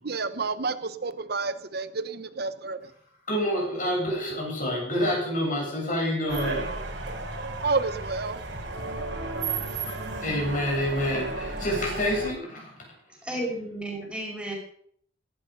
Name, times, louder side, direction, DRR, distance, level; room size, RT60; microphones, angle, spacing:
voice 1, 0.0-2.9 7.6-8.4, right 4 dB, 60° right, 0.8 m, -30 dB
voice 2, 3.3-6.7 10.2-12.9, equal, 50° left, 7.9 m, -28 dB
sound 1, 6.3-12.3, right 3 dB, 80° right, 4.0 m, -33 dB
voice 3, 13.2-14.5, right 1 dB, 5° right, 5.4 m, -33 dB
17.5 x 13.0 x 5.4 m
head